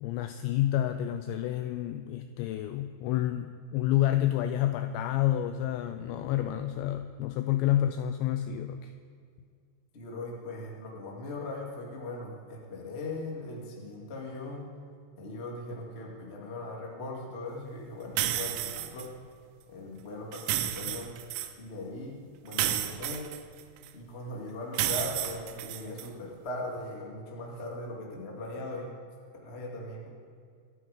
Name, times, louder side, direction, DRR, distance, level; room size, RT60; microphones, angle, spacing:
voice 1, 0.0-8.9 20.9-21.0, left 12 dB, 85° left, 9 dB, 2.6 m, -29 dB
voice 2, 9.9-14.7 15.2-19.1 19.7-21.1 21.6-23.3 23.9-28.9 29.4-30.1, left 2 dB, 35° left, -1 dB, 1.0 m, -39 dB
sound 1, 18.2-19.1 20.3-21.5 22.5-23.9 24.7-26.1, right 12 dB, 90° right, 3.4 m, -31 dB
25.0 x 9.4 x 5.1 m, 2.2 s
omnidirectional pair, 5.7 m